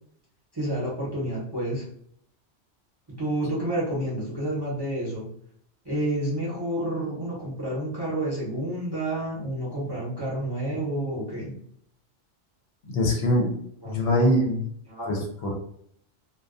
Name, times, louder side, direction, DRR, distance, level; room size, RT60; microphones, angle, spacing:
voice 1, 0.5-1.9 3.1-5.3 5.8-11.6 13.8-14.3 14.9-15.1, right 1 dB, 25° right, -6 dB, 0.7 m, -29 dB
voice 2, 12.9-14.6 15.1-15.5, left 1 dB, 65° left, 0 dB, 0.8 m, -23 dB
2.3 x 2.2 x 2.4 m, 0.65 s
omnidirectional pair, 1.3 m